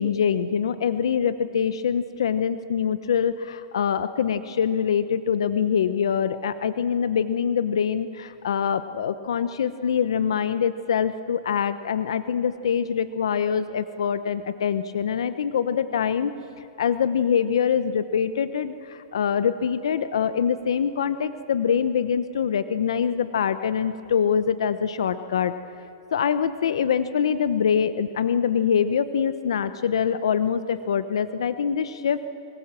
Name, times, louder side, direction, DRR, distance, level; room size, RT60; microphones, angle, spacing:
voice 1, 0.0-16.3 16.8-25.5 26.1-32.2, left 7 dB, 75° left, 12 dB, 0.9 m, -24 dB
24.0 x 22.0 x 7.6 m, 2.6 s
hypercardioid pair, 155°, 3 cm